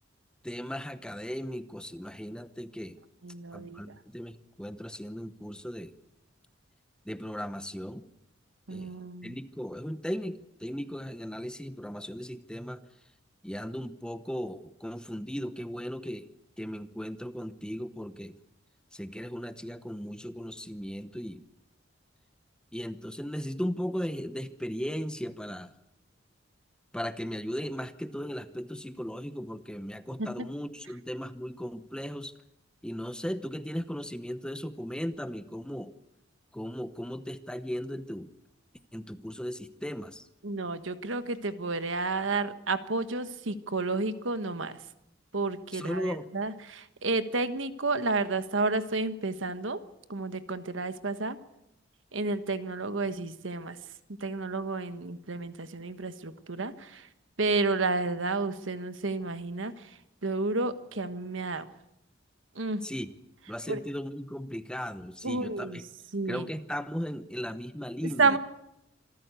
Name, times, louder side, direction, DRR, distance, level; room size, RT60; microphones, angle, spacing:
voice 1, 0.4-3.0 3.5-5.9 7.1-8.0 8.7-8.9 9.2-12.8 13.4-16.3 16.6-18.4 18.9-21.4 22.7-25.7 26.9-32.3 32.8-35.9 36.5-38.3 38.9-40.3 45.7-46.3 62.8-63.1 63.5-65.7 66.3-68.4, equal, 5° left, 11 dB, 0.9 m, -37 dB
voice 2, 3.2-3.9 8.7-9.4 30.2-30.5 40.4-44.8 45.3-49.8 50.1-51.4 52.1-53.8 54.2-57.1 57.4-61.7 62.5-62.8 63.7-63.8 65.2-65.8 66.1-66.5 68.0-68.4, right 3 dB, 80° right, 11 dB, 1.3 m, -31 dB
26.0 x 14.0 x 8.2 m, 0.86 s
head